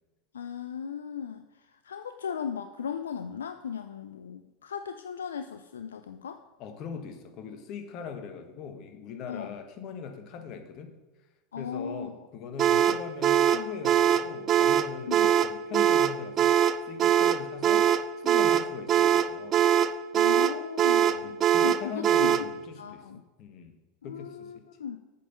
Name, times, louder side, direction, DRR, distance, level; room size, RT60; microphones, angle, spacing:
voice 1, 0.3-6.4 9.3-9.5 11.5-12.2 15.1-15.2 20.1-21.4 21.6-22.4 22.8-23.2 24.0-25.0, left 7 dB, 80° left, 9 dB, 0.4 m, -37 dB
voice 2, 6.6-10.9 11.5-17.9 18.2-19.6 21.2-23.0 23.4-23.7 24.0-24.5, left 6 dB, 50° left, 6 dB, 1.4 m, -41 dB
sound 1, 12.6-22.5, right 9 dB, 40° right, 0.4 m, -22 dB
8.3 x 5.7 x 6.7 m, 1.1 s
figure-of-eight pair, 80°, 0 cm